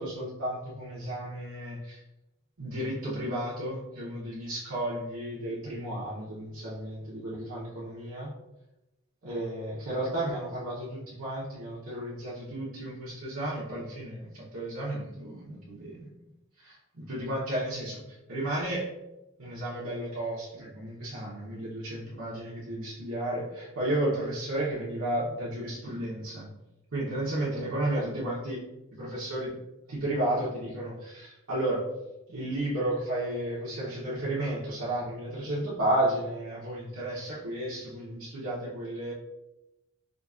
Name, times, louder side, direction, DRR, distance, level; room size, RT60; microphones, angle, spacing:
voice 1, 0.0-2.0 2.6-8.3 9.2-16.1 16.6-18.9 19.4-26.5 26.9-28.6 28.9-29.5 29.9-31.8 32.3-39.1, right 1 dB, 75° right, -9 dB, 0.8 m, -33 dB
4.9 x 2.3 x 2.4 m, 0.95 s
head